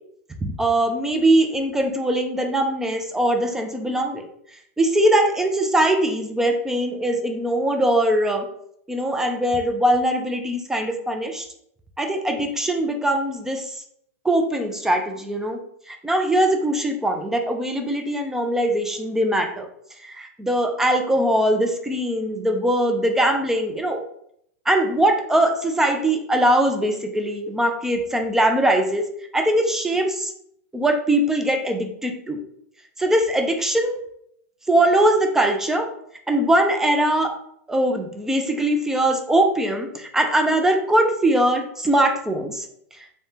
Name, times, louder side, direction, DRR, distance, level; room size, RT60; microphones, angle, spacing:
voice 1, 0.4-4.2 4.8-8.5 8.9-11.5 12.0-13.8 14.2-15.6 15.9-19.7 20.1-24.0 24.7-29.1 29.3-30.3 30.7-32.4 33.0-34.0 34.7-35.9 36.3-37.3 37.7-42.6, right 1 dB, 5° right, 4 dB, 0.3 m, -21 dB
3.3 x 2.1 x 2.7 m, 0.71 s
supercardioid pair, 135°, 8 cm